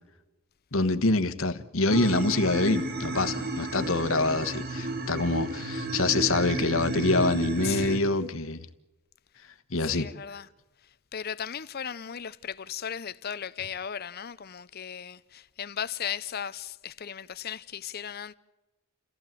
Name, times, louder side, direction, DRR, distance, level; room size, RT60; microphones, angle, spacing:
voice 1, 0.7-8.7 9.7-10.1, left 2 dB, 65° left, 1.3 m, -26 dB
sound 1, 1.9-8.0, right 2 dB, 45° right, 1.8 m, -32 dB
voice 2, 7.6-8.1 9.8-10.5 11.1-18.4, left 8 dB, 45° left, 0.6 m, -36 dB
29.0 x 15.0 x 7.6 m
head